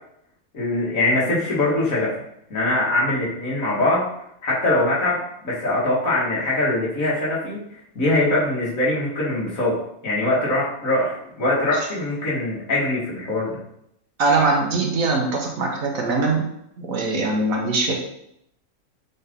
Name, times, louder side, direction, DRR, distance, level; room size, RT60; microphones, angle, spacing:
voice 1, 0.5-2.2 2.5-4.1 4.4-7.6 8.0-9.8 10.0-13.6, left 2 dB, 65° left, -6 dB, 2.3 m, -22 dB
voice 2, 14.2-16.4 16.8-17.9, right 3 dB, 70° right, 1 dB, 1.6 m, -21 dB
7.0 x 3.8 x 3.7 m, 0.75 s
omnidirectional pair, 1.5 m